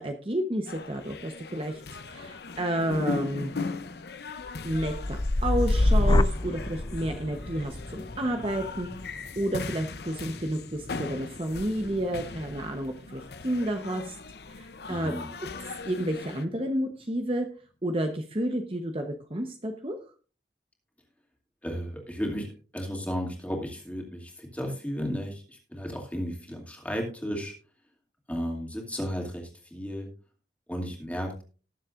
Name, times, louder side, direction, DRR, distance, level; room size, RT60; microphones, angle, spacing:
voice 1, 0.0-1.8 2.1-3.5 4.6-9.1 9.4-14.2 14.6-15.2 15.9-17.5 17.8-20.0, right 1 dB, 30° right, 4 dB, 1.0 m, -30 dB
sound 1, 0.7-16.5, left 4 dB, 65° left, 0.7 m, -39 dB
sound 2, 4.4-12.5 12.9-13.4, left 1 dB, 25° left, 0.4 m, -28 dB
voice 2, 14.9-15.3 21.6-27.5 28.3-30.1 30.7-31.4, equal, 10° left, 0 dB, 2.5 m, -34 dB
19.0 x 7.4 x 2.5 m, 0.36 s
head